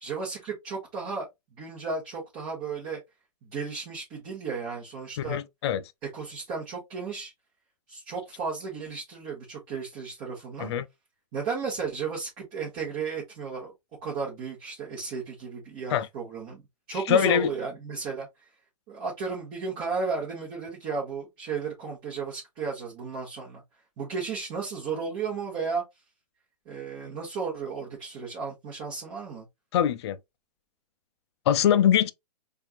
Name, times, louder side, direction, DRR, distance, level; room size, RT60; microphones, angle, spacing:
voice 1, 0.0-1.3 1.6-3.0 3.4-5.4 6.1-7.3 7.9-10.7 11.3-13.7 14.0-16.6 16.9-18.5 18.9-23.6 24.0-25.8 26.6-29.5, right 5 dB, 30° right, 1.2 m, -34 dB
voice 2, 5.2-5.8 10.6-10.9 15.9-16.1 16.9-17.5 29.7-30.2 31.5-32.1, left 10 dB, 40° left, 0.4 m, -23 dB
4.3 x 2.5 x 2.5 m
hypercardioid pair, 150°, 21 cm